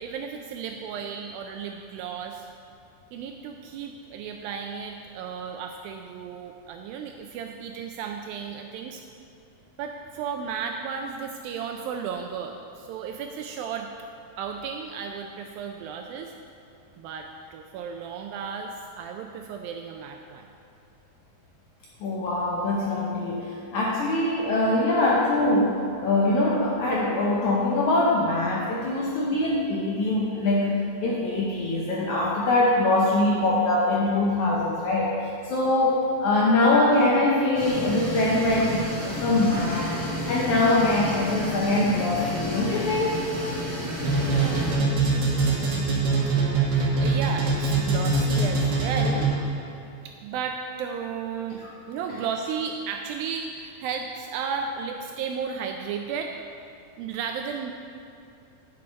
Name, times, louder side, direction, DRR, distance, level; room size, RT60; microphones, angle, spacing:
voice 1, 0.0-2.5 3.1-9.0 9.8-13.9 14.4-16.3 17.0-20.5 44.1-49.3 50.2-56.3 57.0-57.7, right 6 dB, 85° right, 4 dB, 2.1 m, -34 dB
voice 2, 22.0-40.0 40.3-43.2 51.6-51.7, left 2 dB, 75° left, -4 dB, 1.8 m, -23 dB
sound 1, 37.5-44.7, equal, 10° right, 0.8 m, -31 dB
sound 2, 44.0-49.6, right 3 dB, 60° right, 1.1 m, -23 dB
10.0 x 6.8 x 5.3 m, 2.6 s
omnidirectional pair, 4.5 m